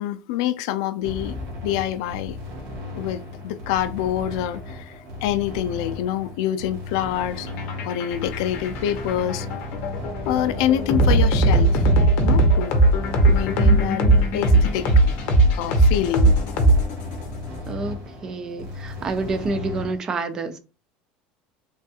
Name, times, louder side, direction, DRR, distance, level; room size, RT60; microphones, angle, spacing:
voice 1, 0.0-1.4 1.6-2.4 2.9-7.5 7.8-9.5 10.3-11.8 12.2-12.8 13.3-14.0 14.3-14.9 15.5-16.3, left 11 dB, 80° left, 0.3 m, -26 dB
sound 1, 1.0-20.0, left 2 dB, 75° right, 1.3 m, -35 dB
sound 2, 7.5-17.2, right 2 dB, 50° left, 0.7 m, -18 dB
voice 2, 17.7-20.6, right 3 dB, 20° right, 0.4 m, -28 dB
3.3 x 2.3 x 2.8 m
cardioid pair, 170°, 3 cm